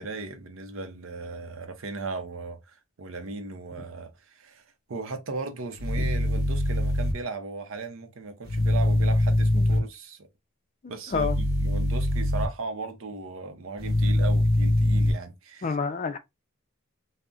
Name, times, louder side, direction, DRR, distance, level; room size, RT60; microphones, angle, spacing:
voice 1, 0.0-2.6 3.0-4.6 4.9-10.3 10.9-15.8, right 3 dB, 75° right, 0.6 m, -37 dB
sound 1, 5.8-7.1 8.5-9.8 11.1-12.5 13.8-15.1, left 1 dB, 45° right, 0.9 m, -23 dB
voice 2, 15.6-16.2, left 5 dB, 35° left, 0.4 m, -28 dB
3.5 x 2.1 x 2.4 m
head